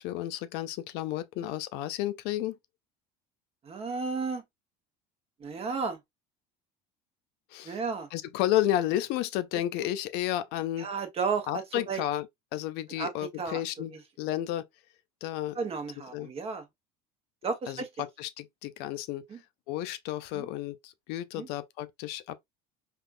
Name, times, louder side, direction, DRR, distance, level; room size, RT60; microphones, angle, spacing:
voice 1, 0.0-2.5 7.5-7.8 8.1-10.9 11.5-12.2 12.5-14.6 15.2-15.6 16.1-16.3 17.7-19.2 19.7-22.4, left 13 dB, 65° left, 0.4 m, -32 dB
voice 2, 3.6-4.4 5.4-6.0 7.6-8.1 10.8-12.0 13.0-13.1 13.4-14.0 15.5-16.6 17.4-18.0 19.3-19.4 20.3-20.5 21.3-21.5, right 5 dB, 35° right, 1.0 m, -33 dB
3.5 x 2.4 x 2.4 m
supercardioid pair, 105°, 18 cm